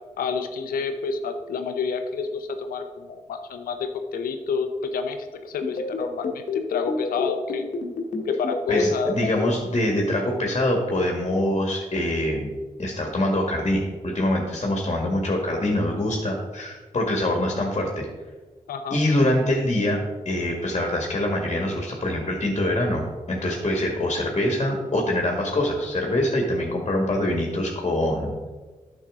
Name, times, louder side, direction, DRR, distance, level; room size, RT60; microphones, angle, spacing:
voice 1, 0.2-6.4 6.7-7.6 8.2-9.1 18.7-19.0, left 5 dB, 80° left, 7 dB, 0.7 m, -28 dB
sound 1, 5.6-9.5, left 4 dB, 60° left, 1.3 m, -28 dB
voice 2, 8.7-12.5 12.8-18.1 18.9-28.4, left 1 dB, 40° left, 1 dB, 1.7 m, -24 dB
9.2 x 6.1 x 3.7 m, 1.3 s
supercardioid pair, 45°, 15 cm